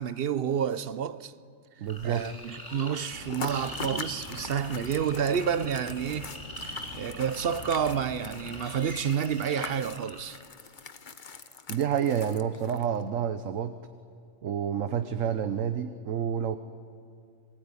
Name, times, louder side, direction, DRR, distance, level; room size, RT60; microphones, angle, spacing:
voice 1, 0.0-1.3 2.0-6.3 6.6-10.4, right 8 dB, 55° right, 0.9 m, -29 dB
voice 2, 1.8-2.3 11.7-13.7 14.4-16.6, right 8 dB, 85° right, 1.2 m, -29 dB
sound 1, 1.9-10.2, equal, 15° left, 4.9 m, -43 dB
sound 2, 3.1-8.6, left 2 dB, 70° left, 2.9 m, -45 dB
sound 3, 3.3-13.0, left 5 dB, 40° left, 1.1 m, -43 dB
27.0 x 20.5 x 9.8 m
omnidirectional pair, 1.3 m